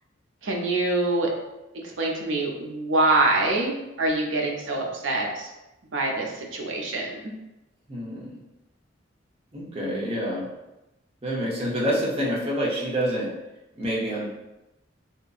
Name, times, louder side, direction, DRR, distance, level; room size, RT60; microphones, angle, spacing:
voice 1, 0.4-1.3 2.0-5.5 5.9-7.3, right 2 dB, 85° right, 0 dB, 0.5 m, -25 dB
voice 2, 7.9-8.4 9.5-10.5 11.2-13.3 13.8-14.3, equal, 30° right, -5 dB, 0.7 m, -27 dB
2.8 x 2.5 x 2.3 m, 0.96 s
head